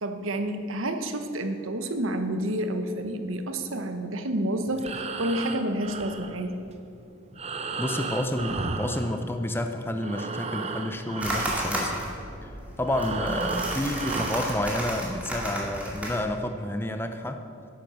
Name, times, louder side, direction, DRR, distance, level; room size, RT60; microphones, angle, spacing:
voice 1, 0.0-6.5, right 1 dB, 80° right, 7 dB, 1.0 m, -29 dB
Breathing, 4.7-9.7 9.9-14.6, right 4 dB, 30° right, 0.7 m, -35 dB
voice 2, 7.8-12.0 12.8-17.4, left 1 dB, 10° left, 7 dB, 0.5 m, -29 dB
sound 1, 11.2-16.2, right 1 dB, 5° right, 2.2 m, -33 dB
10.5 x 9.0 x 6.4 m, 2.6 s
head